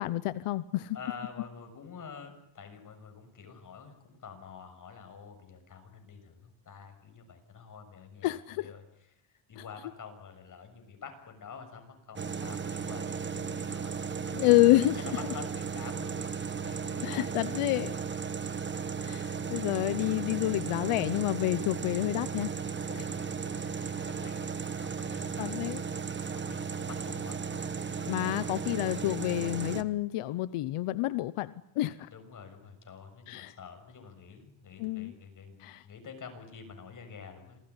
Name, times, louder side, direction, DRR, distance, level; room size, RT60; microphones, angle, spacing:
voice 1, 0.0-1.0 8.2-8.7 9.6-9.7 14.3-15.0 17.0-18.0 19.0-22.5 22.9-23.0 25.4-25.8 28.1-32.1 33.3-33.5 34.8-35.1 35.6-35.8, left 16 dB, 90° left, 14 dB, 1.0 m, -28 dB
voice 2, 0.9-8.8 9.5-14.7 15.0-17.5 19.5-19.7 22.9-24.6 24.8-25.7 26.2-28.2 32.1-37.7, left 6 dB, 40° left, 6 dB, 7.0 m, -48 dB
sound 1, 12.2-29.8, right 6 dB, 20° right, 1.3 m, -35 dB
27.5 x 19.0 x 9.9 m, 0.77 s
cardioid pair, 150°, 50 cm